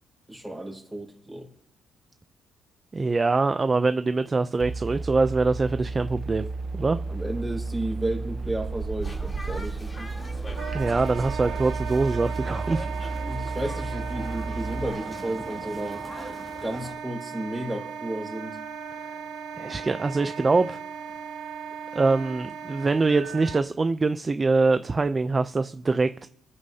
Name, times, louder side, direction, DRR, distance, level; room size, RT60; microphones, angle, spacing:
voice 1, 0.3-1.5 7.1-10.1 13.3-16.1 16.6-18.6, right 1 dB, 5° right, 5.0 m, -33 dB
voice 2, 2.9-6.5 6.7-7.0 10.7-12.9 19.6-20.8 21.9-26.3, right 3 dB, 30° right, 0.5 m, -24 dB
sound 1, 4.6-14.9, right 3 dB, 45° right, 0.8 m, -33 dB
sound 2, 9.0-16.9, equal, 20° left, 3.3 m, -42 dB
Wind instrument woodwind instrument, 10.6-23.6, right 6 dB, 90° right, 1.0 m, -37 dB
28.5 x 9.7 x 2.8 m
cardioid pair, 90°, 0 cm